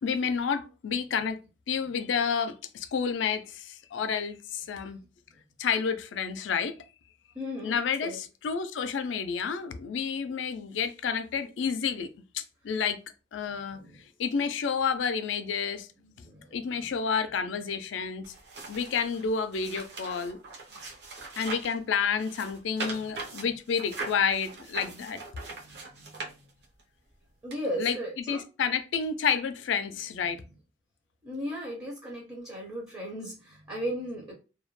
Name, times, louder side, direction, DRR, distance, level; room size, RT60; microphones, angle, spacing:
voice 1, 0.0-1.4 1.7-5.0 5.6-6.7 7.6-12.1 12.3-13.0 13.3-13.8 14.2-15.9 16.5-18.3 18.7-20.4 21.4-25.2 27.8-28.0 28.3-30.4, left 6 dB, 90° left, 0.4 m, -30 dB
voice 2, 7.3-8.2 13.7-14.0 16.0-16.9 20.7-20.8 22.9-23.0 25.6-26.4 27.4-28.4 31.2-34.3, equal, 20° right, 0.5 m, -37 dB
sound 1, 18.2-21.8 22.2-26.8 27.5-27.6, right 3 dB, 60° right, 0.6 m, -40 dB
2.2 x 2.1 x 3.0 m
head